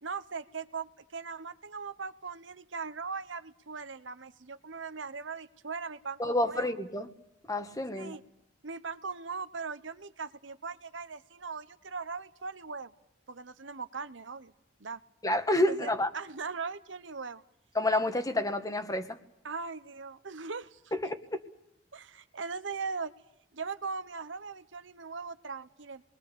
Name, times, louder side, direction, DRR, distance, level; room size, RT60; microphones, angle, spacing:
voice 1, 0.0-6.7 8.0-8.2 8.6-12.9 13.3-14.5 14.8-15.0 15.7-17.4 19.4-20.8 21.9-23.1 23.5-26.0, right 5 dB, 75° right, 1.1 m, -39 dB
voice 2, 6.2-7.1 7.5-8.2 15.2-16.1 17.7-19.2 20.9-21.4, left 1 dB, 20° left, 1.5 m, -29 dB
28.5 x 21.0 x 6.9 m
head